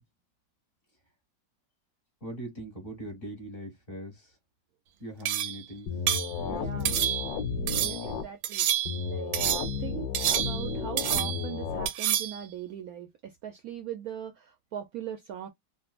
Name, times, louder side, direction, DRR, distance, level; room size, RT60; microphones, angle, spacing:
voice 1, 2.2-4.4 5.0-5.9 6.4-6.9 7.8-8.2, right 1 dB, 30° left, 1.5 m, -41 dB
sound 1, 5.3-5.6 6.1-6.3 6.9-7.4 7.7-8.1 8.4-9.0 9.3-9.8 10.1-10.7 11.0-11.5 11.9-12.4, right 11 dB, 90° right, 1.4 m, -28 dB
sound 2, 5.9-8.2 8.8-11.9, left 5 dB, 80° left, 1.6 m, -33 dB
voice 2, 6.5-7.0 7.8-8.7 9.1-15.5, right 9 dB, 70° right, 0.9 m, -40 dB
3.7 x 2.5 x 2.4 m
omnidirectional pair, 2.0 m